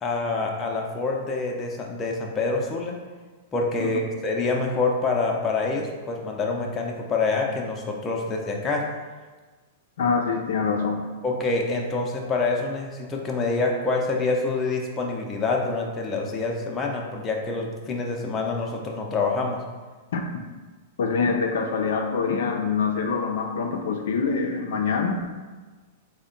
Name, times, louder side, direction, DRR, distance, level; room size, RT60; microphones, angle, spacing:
voice 1, 0.0-3.0 3.5-8.9 11.2-19.6, left 3 dB, 20° left, 0 dB, 0.5 m, -26 dB
voice 2, 10.0-11.1 20.1-20.2 21.0-25.3, left 5 dB, 75° left, 3 dB, 0.4 m, -25 dB
3.4 x 2.1 x 3.8 m, 1.4 s
hypercardioid pair, 135°, 0 cm